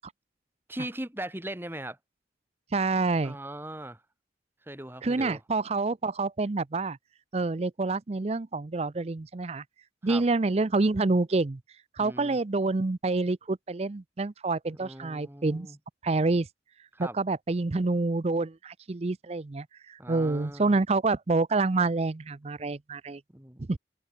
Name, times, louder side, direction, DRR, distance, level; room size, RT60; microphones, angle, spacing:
voice 1, 0.7-2.0 3.2-4.0 4.6-5.4 10.0-10.2 12.0-12.4 14.7-15.8 16.9-17.2 20.0-20.8 23.3-23.8, right 1 dB, 10° right, 2.5 m, -39 dB
voice 2, 2.7-3.4 5.0-7.0 7.3-9.6 10.0-11.6 12.0-15.7 16.0-16.5 17.0-23.2 23.6-23.8, right 3 dB, 35° right, 0.5 m, -27 dB
head